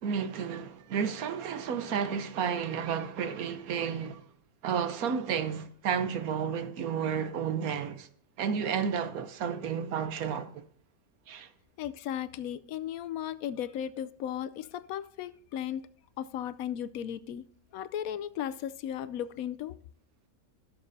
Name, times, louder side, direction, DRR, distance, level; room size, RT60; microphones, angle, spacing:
voice 1, 0.0-4.2 4.6-8.1 8.4-10.6 11.3-11.5, right 7 dB, 80° right, 1.3 m, -32 dB
voice 2, 11.8-15.9 16.2-17.4 17.7-19.8, left 10 dB, 75° left, 1.0 m, -36 dB
16.5 x 6.5 x 2.7 m
omnidirectional pair, 1.5 m